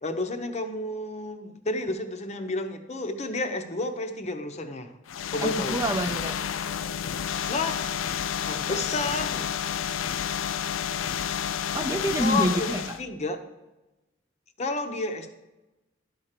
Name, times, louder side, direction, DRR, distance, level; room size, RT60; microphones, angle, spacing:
voice 1, 0.0-4.9 5.3-5.8 7.5-7.9 8.5-9.5 12.2-13.4 14.6-15.3, left 2 dB, 35° left, 7 dB, 0.7 m, -31 dB
sound 1, 5.1-13.0, left 8 dB, 90° left, 0.5 m, -30 dB
voice 2, 5.4-6.4 11.7-13.0, right 1 dB, 15° right, 6 dB, 0.4 m, -27 dB
12.0 x 4.4 x 6.6 m, 1.1 s
head